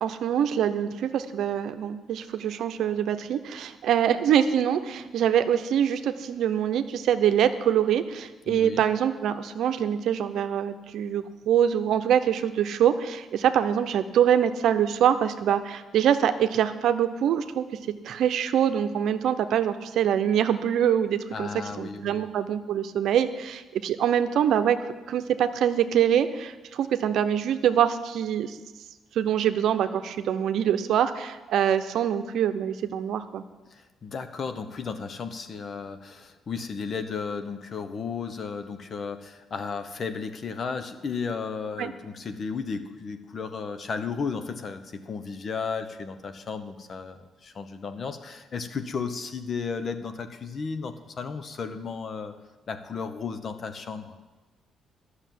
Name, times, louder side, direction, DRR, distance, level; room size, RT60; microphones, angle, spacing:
voice 1, 0.0-17.7 18.0-21.5 21.8-24.8 25.1-28.6 29.2-33.4 41.8-41.9, right 9 dB, 75° right, 10 dB, 0.8 m, -24 dB
voice 2, 8.5-8.8 21.3-22.3 33.7-52.3 52.7-54.2, left 5 dB, 50° left, 9 dB, 1.1 m, -34 dB
11.5 x 6.5 x 9.3 m, 1.2 s
cardioid pair, 90°, 0 cm